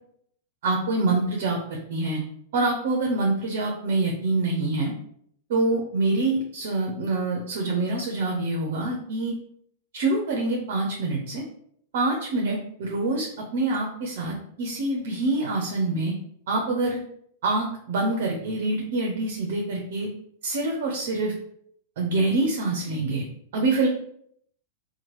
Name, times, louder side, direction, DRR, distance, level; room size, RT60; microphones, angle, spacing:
voice 1, 0.6-2.2 2.5-4.9 5.5-9.3 9.9-11.4 11.9-13.3 13.5-16.1 16.5-17.0 17.4-20.1 20.4-21.3 22.0-23.2 23.5-23.9, right 2 dB, 60° right, 1 dB, 0.6 m, -25 dB
2.9 x 2.2 x 3.1 m, 0.67 s
hypercardioid pair, 100°, 0 cm